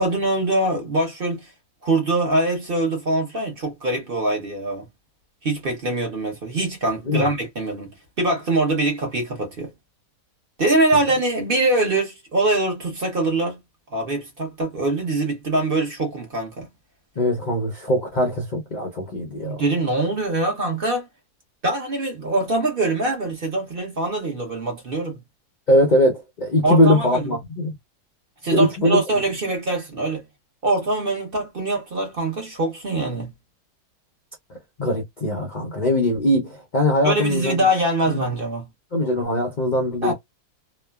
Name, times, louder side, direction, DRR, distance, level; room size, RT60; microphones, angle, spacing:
voice 1, 0.0-1.5 1.8-4.9 5.4-9.7 10.6-13.6 13.9-16.7 19.4-21.0 21.6-25.2 26.6-27.3 28.4-30.2 30.6-33.3 37.0-38.6 40.0-40.1, right 2 dB, 40° right, 1.0 m, -23 dB
voice 2, 17.2-19.6 25.7-27.7 28.5-29.0 34.8-37.7 38.1-38.2 38.9-40.1, left 1 dB, 50° left, 0.5 m, -21 dB
3.0 x 2.1 x 2.3 m
omnidirectional pair, 1.7 m